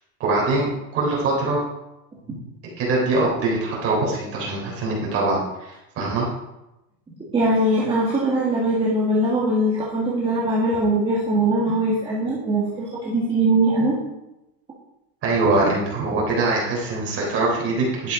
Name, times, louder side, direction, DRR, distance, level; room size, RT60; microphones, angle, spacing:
voice 1, 0.2-0.7 0.9-1.6 2.8-6.3 15.2-18.1, right 2 dB, 25° right, -4 dB, 3.6 m, -23 dB
voice 2, 7.3-14.0, right 1 dB, 10° right, -6 dB, 1.7 m, -21 dB
11.5 x 6.8 x 5.2 m, 0.94 s
supercardioid pair, 165°, 48 cm